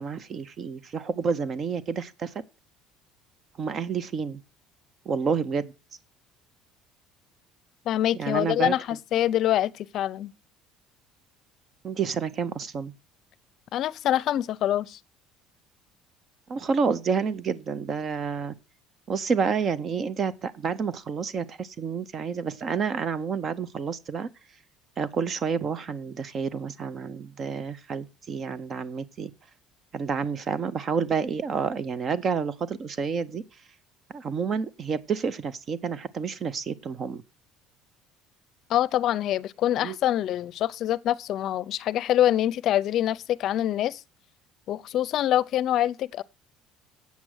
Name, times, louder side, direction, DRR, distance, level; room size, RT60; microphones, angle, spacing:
voice 1, 0.0-2.3 3.6-4.4 5.1-5.7 8.1-8.8 11.8-12.9 16.5-18.5 19.1-24.3 25.0-29.3 29.9-33.4 34.1-37.2 39.8-40.0, right 6 dB, 35° right, 0.6 m, -29 dB
voice 2, 7.9-10.3 13.7-15.0 38.7-44.0 44.7-46.2, left 12 dB, 50° left, 0.6 m, -25 dB
8.3 x 7.4 x 6.4 m
cardioid pair, 145°, 0 cm